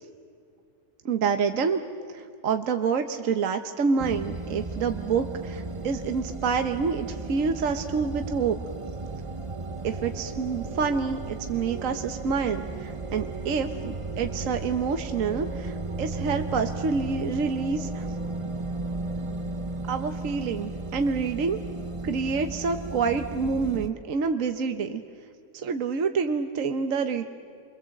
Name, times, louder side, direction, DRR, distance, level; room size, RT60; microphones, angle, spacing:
voice 1, 1.0-1.8 2.1-8.6 9.8-18.1 19.9-21.6 22.0-25.0 25.5-27.2, right 5 dB, 60° right, 7 dB, 1.4 m, -27 dB
sound 1, 4.0-23.9, right 3 dB, 25° right, 0.8 m, -35 dB
29.0 x 24.5 x 7.8 m, 2.3 s
omnidirectional pair, 1.6 m